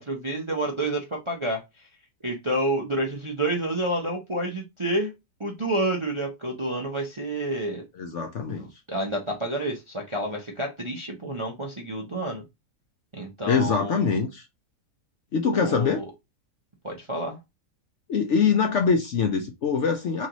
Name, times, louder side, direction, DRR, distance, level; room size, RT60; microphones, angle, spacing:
voice 1, 0.0-1.9 2.2-5.1 5.4-7.9 8.5-12.4 13.1-14.1 15.5-16.1 16.8-17.4, right 1 dB, 35° right, 0.5 m, -29 dB
voice 2, 8.0-8.7 13.5-14.5 15.3-16.0 18.1-20.3, left 5 dB, 60° left, 0.8 m, -23 dB
3.1 x 3.0 x 3.9 m
omnidirectional pair, 1.7 m